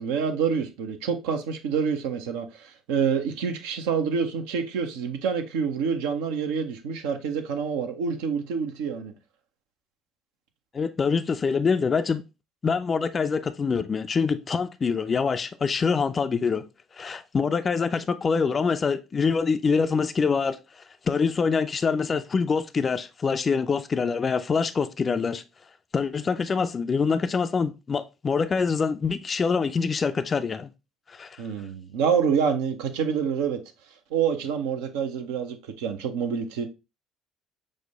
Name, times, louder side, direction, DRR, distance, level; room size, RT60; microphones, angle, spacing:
voice 1, 0.0-9.1 31.4-33.6 34.1-36.7, right 6 dB, 70° right, 0.6 m, -27 dB
voice 2, 10.7-12.2 12.6-16.6 16.9-25.4 25.9-30.7 31.1-31.4, left 5 dB, 35° left, 0.3 m, -25 dB
6.2 x 2.1 x 3.4 m
hypercardioid pair, 55°, 0 cm